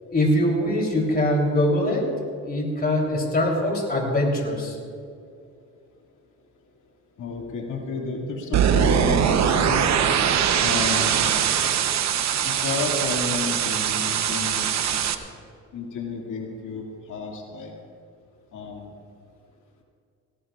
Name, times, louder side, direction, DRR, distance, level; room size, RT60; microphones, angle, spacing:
voice 1, 0.1-2.1 2.4-4.8, left 1 dB, 30° left, 0 dB, 3.5 m, -22 dB
voice 2, 7.2-9.9 10.6-11.3 12.4-15.2 15.7-16.8 17.1-17.7 18.5-18.9, left 4 dB, 80° left, 0 dB, 2.4 m, -31 dB
sound 1, 8.5-15.2, right 8 dB, 65° right, 0.9 m, -22 dB
18.5 x 17.5 x 2.5 m, 2.3 s
cardioid pair, 90°, 30 cm